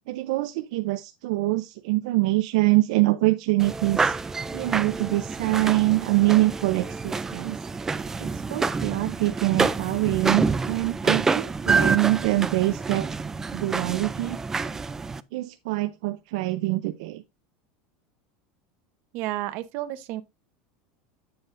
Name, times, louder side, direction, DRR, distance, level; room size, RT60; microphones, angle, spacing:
voice 1, 0.1-4.1 4.5-7.6 8.2-13.1 13.5-14.4 15.3-17.2, right 19 dB, 70° right, 0.5 m, -24 dB
sound 1, 3.6-15.2, right 4 dB, 10° right, 0.4 m, -27 dB
voice 2, 19.1-20.2, right 15 dB, 50° right, 1.0 m, -31 dB
8.9 x 7.8 x 2.6 m
supercardioid pair, 160°, 4 cm